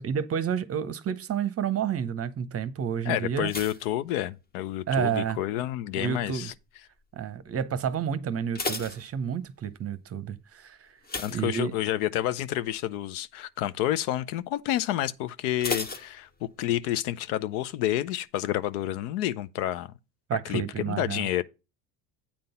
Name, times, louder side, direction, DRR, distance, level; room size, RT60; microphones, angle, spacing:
voice 1, 0.0-3.5 4.9-5.4 6.0-6.5 7.1-10.9 11.3-11.7 20.3-21.3, right 8 dB, 30° right, 0.7 m, -30 dB
voice 2, 3.1-6.5 11.2-19.9 20.4-21.4, left 13 dB, 70° left, 0.6 m, -29 dB
sound 1, 3.4-4.9 5.2-5.7 6.3-6.7 7.0-7.1 7.5-7.6 8.2-9.7 11.0-12.2 12.5-12.8 13.2-13.3 15.6-16.8 17.1-17.2, left 3 dB, 20° left, 0.9 m, -36 dB
8.7 x 3.8 x 5.6 m
hypercardioid pair, 75°, 47 cm